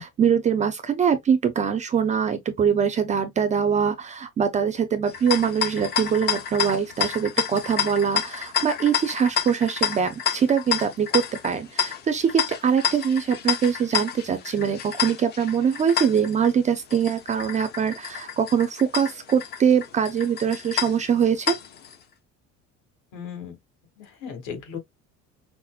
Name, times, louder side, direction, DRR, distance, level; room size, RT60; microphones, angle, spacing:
voice 1, 0.0-21.6, right 7 dB, 25° right, 0.4 m, -23 dB
sound 1, 5.1-21.9, left 8 dB, 35° left, 0.6 m, -29 dB
voice 2, 23.1-23.6 24.0-24.8, left 7 dB, 70° left, 1.9 m, -36 dB
5.6 x 2.1 x 2.3 m
cardioid pair, 165°, 31 cm